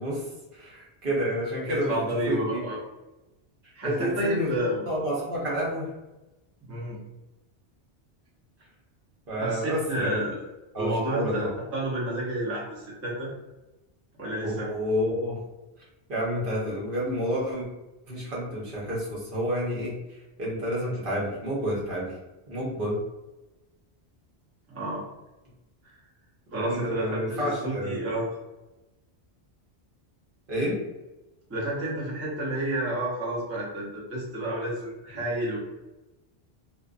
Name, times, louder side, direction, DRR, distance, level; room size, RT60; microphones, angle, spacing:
voice 1, 0.0-2.6 3.8-5.9 9.3-10.3 10.7-11.5 14.4-15.4 16.1-17.7 18.1-22.2 22.5-23.0 26.5-28.0 30.5-30.8, equal, 55° right, -5 dB, 1.0 m, -30 dB
voice 2, 1.7-2.8 3.7-4.8 6.6-7.0 9.3-10.4 10.8-13.3 14.2-14.7 24.7-25.0 25.8-25.9 26.5-28.3 31.5-35.6, right 1 dB, 20° right, -5 dB, 0.4 m, -30 dB
2.5 x 2.2 x 2.4 m, 1.0 s
omnidirectional pair, 1.1 m